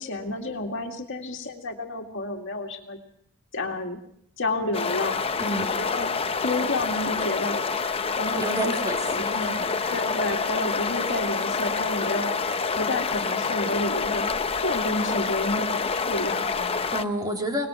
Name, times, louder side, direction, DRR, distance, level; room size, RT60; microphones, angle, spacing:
voice 1, 0.0-3.0 3.5-4.0 4.4-5.2 5.8-6.1 6.4-7.6 8.1-9.5 9.9-12.3 12.7-14.3 14.6-16.7, left 2 dB, 55° left, 3 dB, 2.1 m, -30 dB
sound 1, 4.7-17.0, left 4 dB, 25° left, 0.7 m, -27 dB
voice 2, 5.4-5.7 8.4-10.0 16.9-17.7, right 1 dB, 15° right, 1 dB, 3.2 m, -30 dB
23.5 x 19.5 x 6.2 m, 0.72 s
head